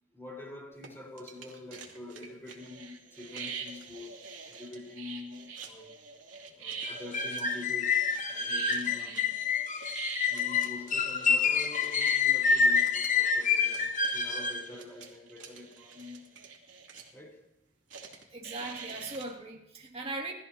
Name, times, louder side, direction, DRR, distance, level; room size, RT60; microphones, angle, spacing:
voice 1, 0.1-4.2 4.5-6.0 6.5-9.4 10.3-16.3 17.1-17.4, left 2 dB, 15° left, 4.2 m, -46 dB
sound 1, 0.8-0.9 1.2-17.1 17.9-19.3, right 6 dB, 90° right, 2.8 m, -45 dB
sound 2, 6.8-14.7, left 5 dB, 45° left, 0.9 m, -27 dB
voice 2, 18.3-20.3, right 2 dB, 30° right, 2.3 m, -39 dB
20.5 x 14.0 x 2.9 m
head